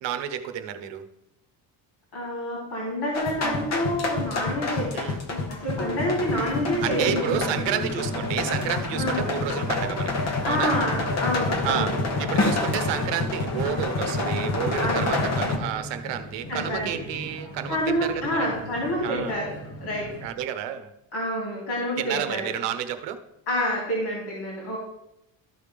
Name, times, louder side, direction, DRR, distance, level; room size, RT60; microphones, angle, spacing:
voice 1, 0.0-1.1 4.9-5.2 6.8-10.7 11.6-11.9 12.2-18.4 19.0-19.4 20.2-20.9 22.0-23.2, right 10 dB, 70° right, 9 dB, 0.9 m, -30 dB
voice 2, 2.1-4.9 5.3-7.4 8.9-9.3 10.2-12.0 14.8-15.2 16.5-17.0 17.7-19.5 19.8-20.1 21.1-22.5 23.5-24.8, equal, 60° left, -4 dB, 3.1 m, -28 dB
sound 1, 3.1-15.6, left 3 dB, 35° left, 1.0 m, -28 dB
sound 2, 5.7-20.3, left 1 dB, 80° left, 1.8 m, -39 dB
13.0 x 5.0 x 3.4 m, 0.86 s
cardioid pair, 155°, 45 cm